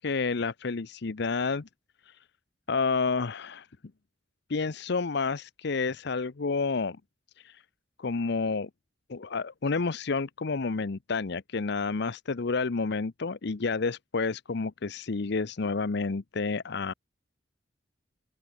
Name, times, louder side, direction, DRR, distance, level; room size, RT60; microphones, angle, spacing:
voice 1, 0.0-1.7 2.1-2.2 2.7-3.7 4.5-7.0 7.4-7.6 8.0-8.7 9.1-16.9, left 4 dB, 65° left, 0.7 m, -30 dB
open air
head